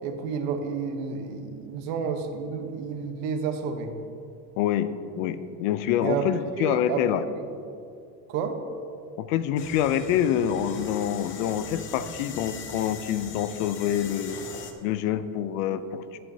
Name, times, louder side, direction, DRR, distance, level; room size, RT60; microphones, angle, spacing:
voice 1, 0.0-3.9 6.0-6.3 6.5-7.0 7.3-7.4 8.3-8.5, right 6 dB, 70° right, 6 dB, 1.1 m, -30 dB
voice 2, 4.6-4.9 5.2-7.2 9.2-14.4 14.8-16.0, left 10 dB, 80° left, 12 dB, 0.7 m, -26 dB
sound 1, 9.6-14.7, left 5 dB, 30° left, 0.7 m, -40 dB
15.5 x 7.8 x 2.8 m, 2.5 s
cardioid pair, 165°, 40 cm